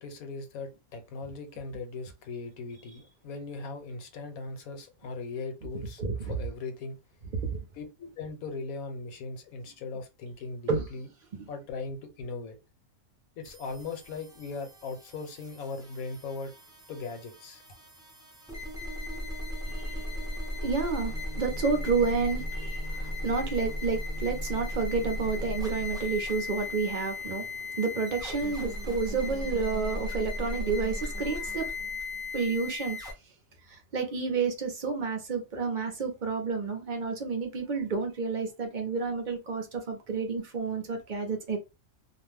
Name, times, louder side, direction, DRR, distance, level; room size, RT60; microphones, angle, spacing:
voice 1, 0.0-7.0 7.8-11.1 11.5-12.6 13.4-16.5 16.9-17.6, left 3 dB, 80° left, 1.2 m, -39 dB
voice 2, 6.0-6.4 7.5-7.6 10.7-10.8 19.7-31.7 32.3-33.0 33.7-41.6, right 4 dB, 45° right, 0.6 m, -30 dB
sound 1, 13.4-33.1, left 1 dB, 5° right, 0.4 m, -36 dB
2.5 x 2.2 x 3.3 m
omnidirectional pair, 1.5 m